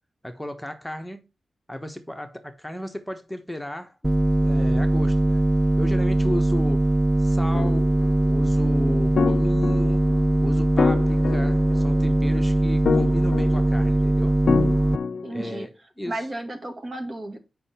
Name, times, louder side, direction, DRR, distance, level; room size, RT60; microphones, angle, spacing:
voice 1, 0.2-1.3 1.7-3.9 4.4-5.4 5.8-7.9 8.3-10.0 10.4-14.4 15.3-16.3, left 1 dB, 5° left, 1.1 m, -34 dB
sound 1, 4.0-15.0, right 1 dB, 15° right, 0.4 m, -21 dB
voice 2, 6.0-6.4 15.2-15.7 16.0-17.4, right 1 dB, 50° right, 2.1 m, -34 dB
sound 2, 7.5-8.1 9.2-10.2 10.8-12.2 12.9-13.9 14.5-15.6, left 5 dB, 75° left, 0.3 m, -27 dB
7.4 x 5.7 x 4.3 m
cardioid pair, 60°, 0 cm